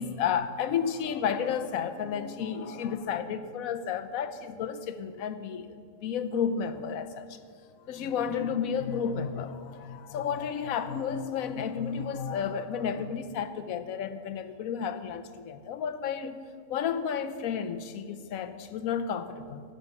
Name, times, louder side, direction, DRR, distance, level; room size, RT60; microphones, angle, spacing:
voice 1, 0.0-7.4 7.9-16.4 16.7-19.6, left 7 dB, 75° left, 1.1 m, -32 dB
9.9 x 6.5 x 8.1 m
omnidirectional pair, 1.5 m